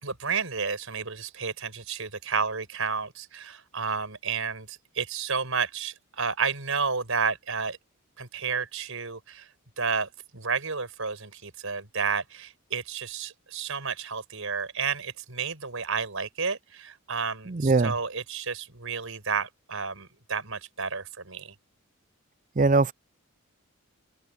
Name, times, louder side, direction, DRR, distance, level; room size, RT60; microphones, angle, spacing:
voice 1, 0.0-7.8 8.2-9.5 9.8-21.5, right 5 dB, 70° right, 5.3 m, -31 dB
voice 2, 17.5-18.0 22.6-22.9, right 3 dB, 35° right, 0.5 m, -21 dB
open air
head